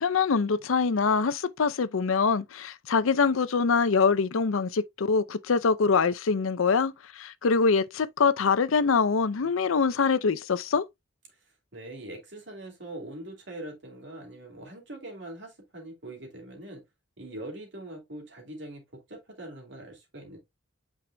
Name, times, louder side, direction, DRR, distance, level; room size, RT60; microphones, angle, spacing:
voice 1, 0.0-10.8, left 5 dB, 90° left, 0.6 m, -24 dB
voice 2, 11.7-16.8 17.2-20.4, right 1 dB, 60° right, 2.6 m, -42 dB
8.8 x 4.8 x 2.2 m
head